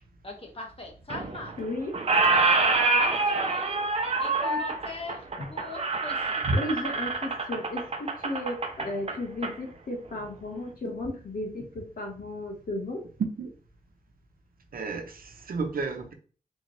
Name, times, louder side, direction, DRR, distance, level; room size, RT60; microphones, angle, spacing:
voice 1, 0.2-1.6 2.2-3.8 4.2-6.4, left 2 dB, 40° left, 2 dB, 1.3 m, -41 dB
Squeak, 1.1-1.7 1.9-9.5, right 3 dB, 45° right, 0.7 m, -26 dB
voice 2, 1.6-2.0 5.4-5.5 6.5-13.0, left 1 dB, 70° left, 0 dB, 1.5 m, -34 dB
voice 3, 14.7-16.1, right 3 dB, 75° right, 4 dB, 0.8 m, -32 dB
3.6 x 3.5 x 3.3 m, 0.40 s
wide cardioid pair, 75°, 15 cm